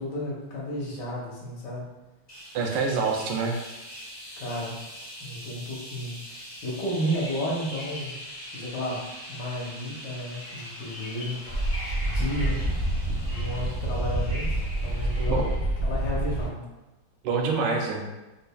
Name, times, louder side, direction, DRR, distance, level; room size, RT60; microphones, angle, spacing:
voice 1, 0.0-1.9 4.4-4.8 5.2-8.2 8.5-11.4 12.1-12.7 13.3-16.7, equal, 65° left, -4 dB, 1.4 m, -33 dB
sound 1, 2.3-15.6, equal, 25° left, 0.6 m, -43 dB
voice 2, 2.5-3.5 15.3-15.5 17.2-18.0, right 4 dB, 75° right, 2 dB, 1.1 m, -26 dB
Bird vocalization bird call bird song, 3.0-3.7 4.3-4.6 5.1-5.3 5.8-6.1 6.4-8.2 8.6-9.4 9.7-12.9 13.6-13.7, left 2 dB, 90° left, 2.5 m, -47 dB
Wind / Subway metro underground, 11.4-16.5, right 1 dB, 35° right, 0.3 m, -27 dB
5.3 x 2.3 x 2.2 m, 1.0 s
omnidirectional pair, 2.2 m